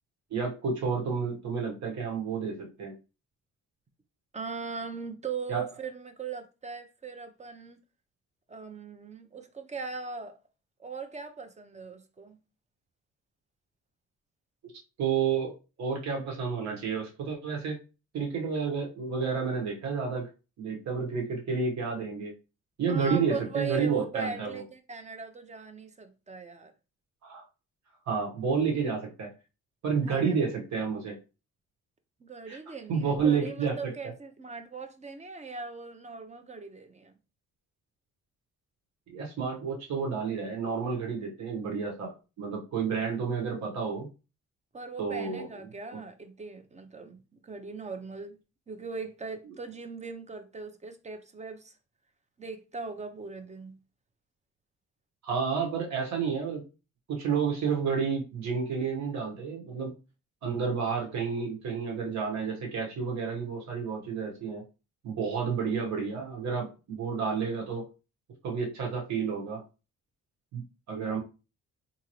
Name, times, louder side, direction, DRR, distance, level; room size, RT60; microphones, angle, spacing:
voice 1, 0.3-2.9 5.5-5.6 15.0-15.5 15.8-17.8 18.1-20.3 20.6-22.3 22.8-24.6 27.2-27.4 28.1-29.3 29.8-31.2 32.5-32.6 32.9-33.9 39.1-44.1 45.0-45.5 45.9-46.0 55.2-56.6 57.1-59.9 60.4-64.6 65.0-67.8 68.4-69.6 70.5-70.6 70.9-71.2, right 5 dB, 65° right, 1.4 m, -30 dB
voice 2, 4.3-7.8 8.5-10.4 10.8-12.4 22.9-26.7 30.0-30.3 32.2-37.1 44.7-48.4 48.7-51.7 52.4-53.8 70.9-71.2, right 5 dB, 25° right, 0.6 m, -39 dB
3.6 x 2.9 x 3.1 m
cardioid pair, 90°, 30 cm